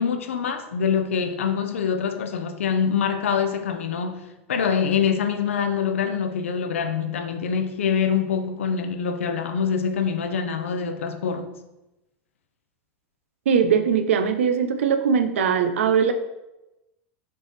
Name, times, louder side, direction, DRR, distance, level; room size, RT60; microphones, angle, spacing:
voice 1, 0.0-11.6, left 6 dB, 90° left, 0.7 m, -25 dB
voice 2, 13.5-16.1, right 7 dB, 85° right, 0.6 m, -20 dB
6.9 x 3.4 x 4.2 m
hypercardioid pair, 115°, 7 cm